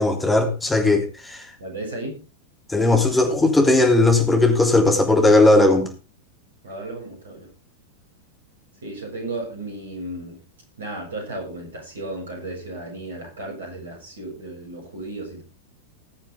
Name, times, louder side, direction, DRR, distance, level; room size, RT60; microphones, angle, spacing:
voice 1, 0.0-1.4 2.7-5.9, left 2 dB, 10° left, 3.4 m, -17 dB
voice 2, 1.6-2.2 6.6-7.5 8.8-10.4 10.8-15.4, right 2 dB, 65° right, 7.0 m, -34 dB
20.5 x 7.3 x 3.8 m
figure-of-eight pair, 90°, 0 cm